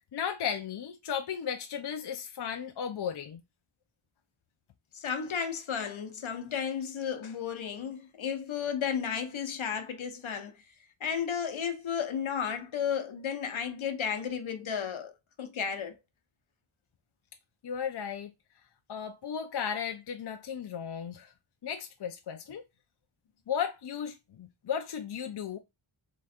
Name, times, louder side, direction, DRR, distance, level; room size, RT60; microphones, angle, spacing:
voice 1, 0.1-3.4 17.6-18.3 18.9-21.3 21.6-22.6 23.5-25.6, left 8 dB, 55° left, 0.6 m, -35 dB
voice 2, 4.9-10.6 11.0-15.1 15.4-16.0, left 7 dB, 75° left, 0.9 m, -33 dB
3.7 x 3.1 x 4.3 m
wide cardioid pair, 105°, 49 cm